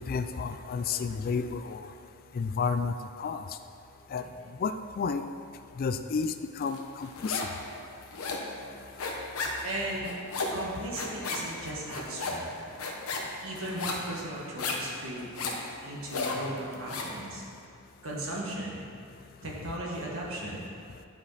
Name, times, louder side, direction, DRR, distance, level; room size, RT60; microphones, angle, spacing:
voice 1, 0.1-1.8 2.4-2.9 3.2-3.4 4.1-4.2 4.6-5.2 5.8-7.4, left 5 dB, 45° left, 9 dB, 0.3 m, -31 dB
sound 1, 6.7-7.6 7.9-17.2, left 3 dB, 80° left, 1.0 m, -34 dB
voice 2, 9.6-10.1 10.5-12.5 13.4-15.3 15.8-17.4 18.0-18.8 19.4-20.6, right 1 dB, 65° right, -4 dB, 1.6 m, -36 dB
9.9 x 5.2 x 4.0 m, 2.5 s
head